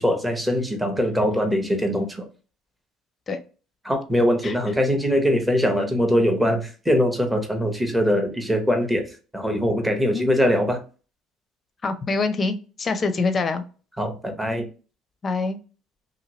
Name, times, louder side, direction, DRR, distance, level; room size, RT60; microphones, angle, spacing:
voice 1, 0.0-2.3 3.8-10.8 14.0-14.7, equal, 5° right, 4 dB, 0.8 m, -22 dB
voice 2, 11.8-13.6 15.2-15.6, left 3 dB, 30° left, 9 dB, 0.5 m, -25 dB
2.8 x 2.6 x 2.9 m, 0.36 s
cardioid pair, 110°, 0 cm